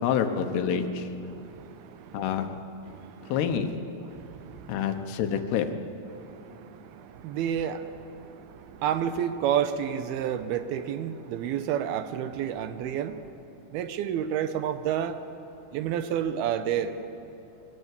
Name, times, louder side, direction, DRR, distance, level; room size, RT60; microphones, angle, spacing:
voice 1, 0.0-1.1 2.1-2.5 3.3-3.8 4.7-5.7, left 8 dB, 80° left, 7 dB, 3.1 m, -27 dB
voice 2, 1.3-2.5 2.9-3.4 4.1-5.1 6.1-13.3 13.7-15.2 15.7-17.0, right 9 dB, 80° right, 10 dB, 2.6 m, -31 dB
23.0 x 17.5 x 8.3 m, 2.9 s
omnidirectional pair, 4.7 m